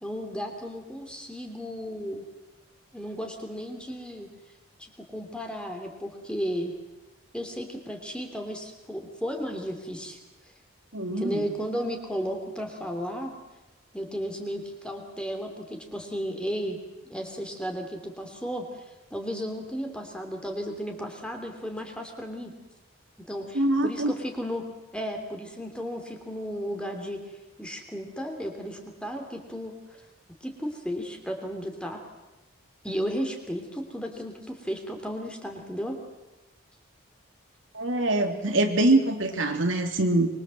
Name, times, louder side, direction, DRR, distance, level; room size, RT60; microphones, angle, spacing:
voice 1, 0.0-2.2 2.9-4.3 5.0-6.7 7.3-10.2 11.1-13.3 13.9-16.8 17.0-18.7 19.1-22.5 23.2-27.2 27.6-29.7 30.4-32.0 32.8-36.0, equal, 5° left, 3 dB, 3.2 m, -34 dB
voice 2, 10.9-11.4 23.5-24.1 37.7-40.3, right 2 dB, 65° right, 4 dB, 2.8 m, -24 dB
25.0 x 23.0 x 7.8 m, 1.1 s
head